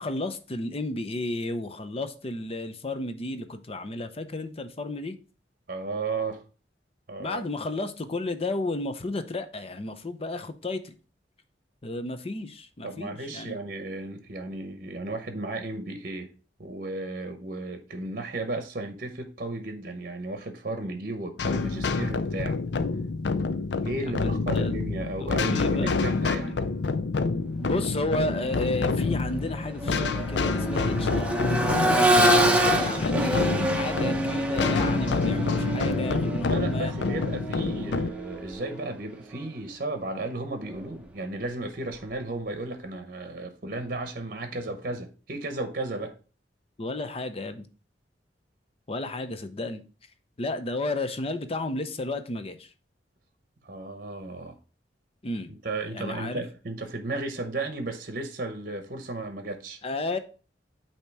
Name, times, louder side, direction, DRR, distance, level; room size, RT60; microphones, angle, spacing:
voice 1, 0.0-5.2 7.2-10.9 11.8-13.6 24.1-24.7 25.2-26.0 26.3-26.6 27.6-31.4 31.8-32.4 32.7-36.9 46.8-47.7 48.9-49.8 50.4-52.7 55.2-55.5 55.9-56.4 59.8-60.2, left 2 dB, 35° left, 0.6 m, -33 dB
voice 2, 5.7-6.4 7.1-7.4 12.8-16.3 16.6-22.6 23.8-26.6 32.7-33.4 36.5-46.1 53.6-54.6 55.6-59.8, right 2 dB, 55° right, 0.8 m, -34 dB
sound 1, 21.4-38.1, left 4 dB, 75° left, 0.5 m, -27 dB
Accelerating revving vroom, 28.4-28.6 29.0-38.9 40.6-40.7, right 1 dB, 5° right, 0.8 m, -26 dB
8.6 x 2.9 x 4.6 m
head